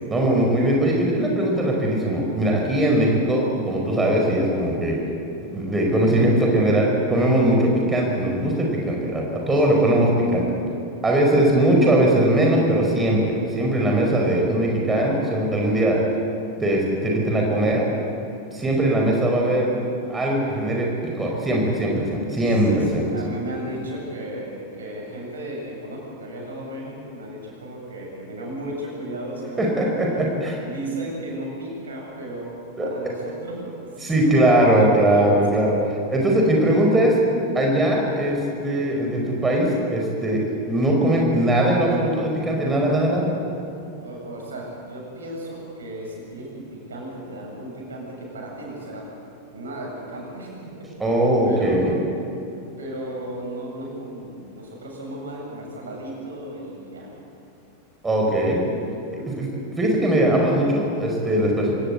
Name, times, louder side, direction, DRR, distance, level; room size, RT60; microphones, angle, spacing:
voice 1, 0.1-5.0 5.5-10.4 11.0-16.0 16.6-17.9 18.5-19.7 20.1-20.9 21.2-23.0 29.6-30.6 32.8-32.9 34.0-35.8 36.1-37.2 37.5-40.4 40.7-43.4 51.0-52.0 58.0-58.6 59.3-59.5 59.8-61.7, right 1 dB, 15° right, -1 dB, 4.8 m, -20 dB
voice 2, 9.3-10.0 19.3-19.6 22.7-30.2 30.6-35.3 44.0-49.1 49.5-50.9 51.4-51.8 52.8-57.1 59.1-59.6, right 1 dB, 70° right, -1 dB, 7.9 m, -35 dB
25.5 x 18.5 x 8.1 m, 2.7 s
figure-of-eight pair, 90°, 0 cm